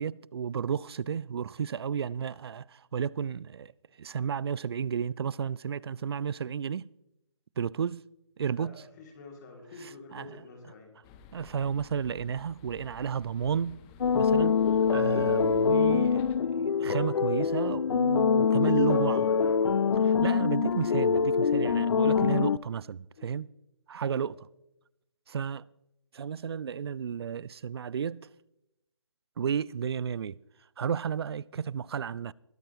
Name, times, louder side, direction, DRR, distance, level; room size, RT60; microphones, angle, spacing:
voice 1, 0.0-3.7 4.0-6.9 7.6-8.0 8.4-8.7 9.8-10.4 11.3-13.8 14.1-14.6 14.9-19.2 20.0-23.5 23.9-24.4 25.3-25.6 26.1-28.3 29.4-30.4 30.8-32.3, right 7 dB, 55° right, 0.4 m, -32 dB
voice 2, 8.5-10.9 18.5-19.8 23.2-23.4 24.1-24.3, left 4 dB, 35° left, 2.9 m, -47 dB
sound 1, 11.0-16.4, left 5 dB, 15° left, 0.5 m, -51 dB
sound 2, 14.0-22.6, left 6 dB, 65° left, 0.4 m, -24 dB
21.5 x 8.7 x 3.1 m
figure-of-eight pair, 150°, 16 cm